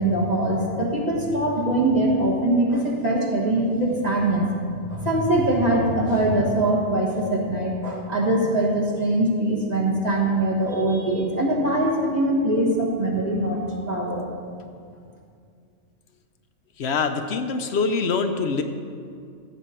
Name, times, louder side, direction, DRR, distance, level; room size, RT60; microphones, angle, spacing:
voice 1, 0.0-4.4 4.9-13.6 13.9-14.2, right 1 dB, 30° right, -3 dB, 1.5 m, -22 dB
voice 2, 16.8-18.6, left 4 dB, 60° left, 7 dB, 0.8 m, -24 dB
14.5 x 7.3 x 4.4 m, 2.3 s
omnidirectional pair, 1.4 m